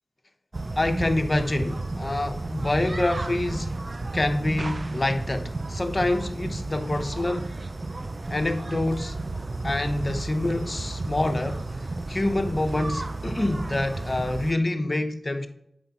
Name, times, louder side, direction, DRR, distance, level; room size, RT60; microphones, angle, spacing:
sound 1, 0.5-14.5, right 2 dB, 45° right, 0.3 m, -32 dB
voice 1, 0.8-3.7 4.1-7.6 8.3-9.2 9.6-11.6 12.1-15.5, left 1 dB, 35° left, 0.7 m, -26 dB
7.6 x 4.5 x 2.9 m
wide cardioid pair, 65°, 0 cm